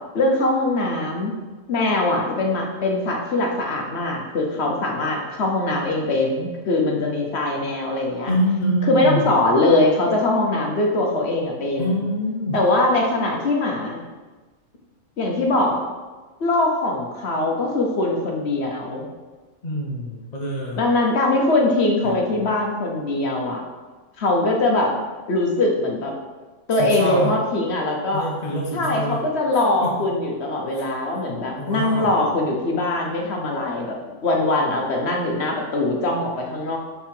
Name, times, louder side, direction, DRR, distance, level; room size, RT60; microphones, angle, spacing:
voice 1, 0.1-1.3 1.7-8.3 8.9-12.0 12.5-14.1 15.2-15.8 16.4-19.1 20.7-23.6 24.2-24.9 25.3-26.1 26.7-28.3 28.7-33.9 34.2-36.8, left 2 dB, 50° left, 1 dB, 1.1 m, -22 dB
voice 2, 8.3-9.2 11.8-12.6 19.6-20.8 22.0-22.1 22.4-22.5 26.8-27.3 28.1-29.2 29.8-29.9 30.7-30.9 31.2-32.2, equal, 35° left, -3 dB, 0.8 m, -25 dB
5.6 x 4.5 x 4.5 m, 1.3 s
omnidirectional pair, 1.5 m